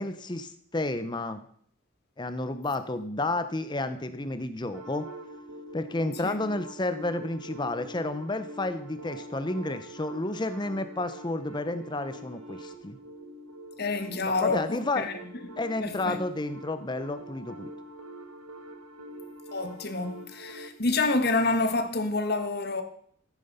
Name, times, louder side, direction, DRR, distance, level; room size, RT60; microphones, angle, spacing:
voice 1, 0.0-1.4 2.2-5.1 5.7-13.0 14.4-15.1 15.6-17.7, left 2 dB, 20° left, 0.6 m, -31 dB
sound 1, 4.7-20.7, right 1 dB, 85° right, 2.1 m, -44 dB
voice 2, 13.8-15.1 15.4-16.2 19.5-22.8, left 3 dB, 50° left, 1.4 m, -28 dB
14.0 x 9.2 x 5.5 m
head